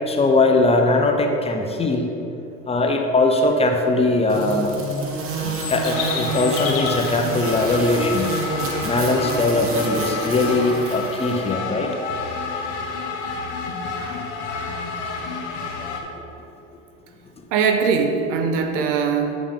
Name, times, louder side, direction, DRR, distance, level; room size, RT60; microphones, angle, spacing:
voice 1, 0.1-2.1 2.7-4.7 5.4-8.3 8.8-11.9, left 2 dB, 15° left, 3 dB, 0.6 m, -20 dB
sound 1, 3.4-3.5 4.3-7.2 10.9-11.1 11.8-11.9 12.9-13.0, left 6 dB, 70° left, 1.5 m, -32 dB
sound 2, 4.3-11.4, right 3 dB, 35° right, 1.1 m, -29 dB
sound 3, 5.9-16.0, left 4 dB, 50° left, 1.0 m, -30 dB
voice 2, 13.9-14.8 17.5-19.4, right 5 dB, 75° right, 5 dB, 0.9 m, -23 dB
8.3 x 5.0 x 3.6 m, 3.0 s
hypercardioid pair, 90°, 38 cm